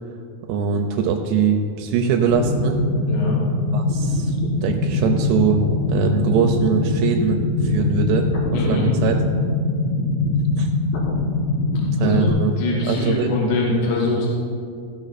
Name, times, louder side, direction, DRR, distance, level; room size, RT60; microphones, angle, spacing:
voice 1, 0.5-2.8 3.7-5.6 5.9-9.1 10.6-10.7 12.0-12.6 12.8-13.5, right 6 dB, 90° right, 3 dB, 2.8 m, -22 dB
sound 1, 2.3-12.3, left 2 dB, 60° left, 2.0 m, -22 dB
voice 2, 3.1-3.4 8.5-8.8 12.0-12.3 12.6-14.3, left 2 dB, 85° left, -3 dB, 3.6 m, -23 dB
16.0 x 6.5 x 4.1 m, 2.5 s
omnidirectional pair, 4.8 m